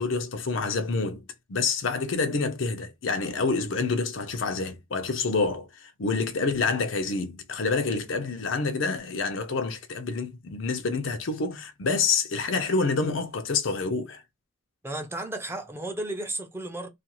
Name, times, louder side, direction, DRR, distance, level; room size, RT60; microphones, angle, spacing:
voice 1, 0.0-14.2, left 4 dB, 85° left, 0.6 m, -27 dB
voice 2, 14.8-16.9, right 1 dB, 15° right, 0.5 m, -33 dB
2.4 x 2.3 x 2.9 m
head